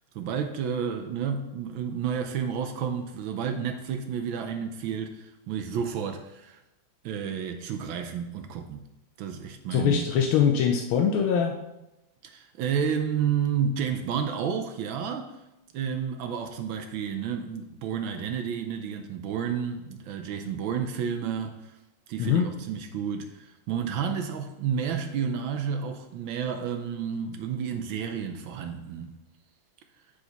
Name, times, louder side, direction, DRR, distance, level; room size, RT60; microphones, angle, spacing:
voice 1, 0.1-6.6 7.0-8.9 9.2-10.1 12.2-15.4 15.7-21.7 22.1-29.1, right 7 dB, 75° right, 1.4 m, -31 dB
voice 2, 9.7-11.6 22.2-22.5, left 7 dB, 90° left, 1.5 m, -23 dB
8.3 x 5.0 x 4.0 m
omnidirectional pair, 2.2 m